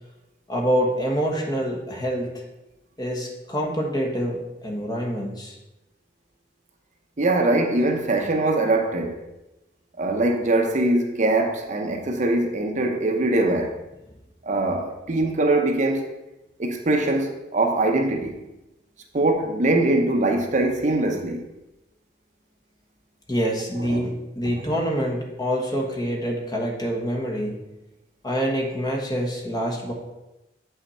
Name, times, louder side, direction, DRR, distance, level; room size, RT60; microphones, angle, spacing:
voice 1, 0.5-2.4 3.0-5.6 23.3-27.7 28.2-29.9, equal, 20° left, 1.3 m, -26 dB
voice 2, 7.2-9.2 10.0-13.8 14.4-16.0 16.6-18.3 19.1-21.4 23.8-24.0, right 2 dB, 40° right, 0.7 m, -22 dB
7.7 x 5.6 x 4.2 m
head